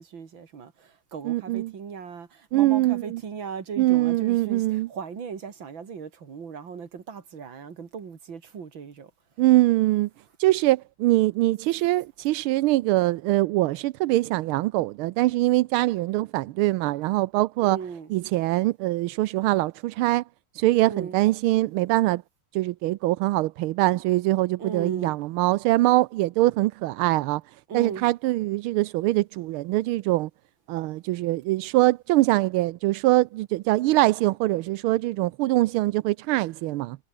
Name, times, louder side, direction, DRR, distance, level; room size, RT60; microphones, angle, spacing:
voice 1, 0.0-9.1 17.6-18.1 20.9-21.2 24.6-25.1 27.7-28.0, right 6 dB, 65° right, 3.1 m, -37 dB
voice 2, 1.3-1.7 2.5-3.2 3.8-4.9 9.4-10.1 10.4-17.8 18.1-20.2 20.5-22.2 22.5-27.4 27.7-30.3 30.7-37.0, right 17 dB, 85° right, 1.5 m, -23 dB
omnidirectional pair, 2.3 m